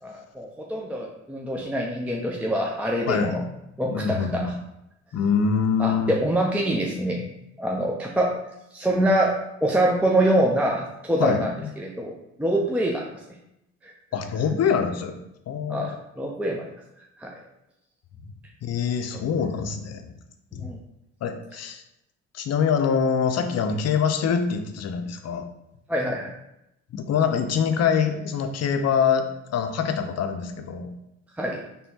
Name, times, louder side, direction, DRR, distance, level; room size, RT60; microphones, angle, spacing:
voice 1, 0.0-3.4 3.8-4.5 5.8-7.2 7.6-8.4 8.7-9.4 9.6-11.5 11.8-12.1 12.4-13.1 13.8-13.9 15.7-16.7 17.2-17.3 20.6-20.8 25.9-26.3 31.4-31.6, right 1 dB, 5° right, -1 dB, 0.5 m, -25 dB
voice 2, 3.9-4.5 5.1-6.1 11.2-11.7 14.1-15.1 15.5-15.9 18.6-20.0 20.5-20.7 21.2-21.8 22.3-25.4 26.9-30.9, left 6 dB, 55° left, 6 dB, 0.6 m, -24 dB
4.3 x 3.5 x 2.8 m, 0.84 s
cardioid pair, 90°, 30 cm